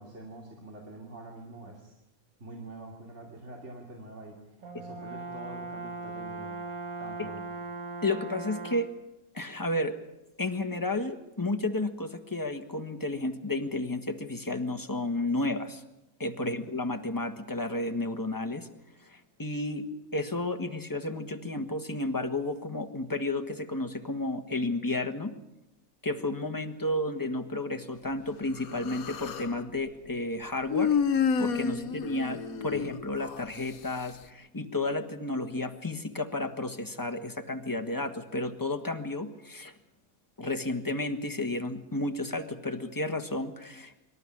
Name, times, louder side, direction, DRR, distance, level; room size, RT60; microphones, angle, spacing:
voice 1, 0.0-1.9 2.4-6.6 7.0-7.4 16.4-16.7 31.7-32.0, right 2 dB, 55° right, 0 dB, 2.9 m, -46 dB
Brass instrument, 4.6-9.0, right 3 dB, 75° right, 1.7 m, -39 dB
voice 2, 8.0-8.9 9.3-9.9 10.4-15.8 16.2-18.7 19.0-19.8 20.1-25.3 26.0-31.0 31.4-39.7 40.4-44.0, left 2 dB, 15° left, 6 dB, 1.5 m, -32 dB
Human voice, 28.6-29.6 30.7-33.4, left 6 dB, 80° left, 1.5 m, -29 dB
25.5 x 12.5 x 9.9 m, 0.92 s
omnidirectional pair, 1.5 m